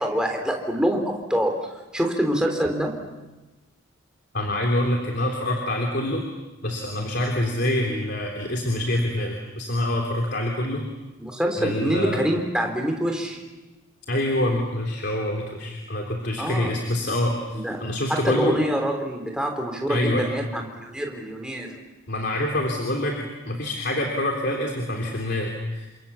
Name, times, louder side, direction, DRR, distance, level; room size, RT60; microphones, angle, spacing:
voice 1, 0.0-3.0 11.2-13.4 16.4-16.8 17.5-21.9, equal, 5° right, 3 dB, 3.6 m, -26 dB
voice 2, 4.3-6.3 6.6-10.9 11.6-12.2 14.1-18.6 19.9-20.3 22.1-23.2 23.5-25.9, left 1 dB, 55° left, 0 dB, 3.5 m, -26 dB
29.5 x 26.5 x 7.1 m, 1.1 s
head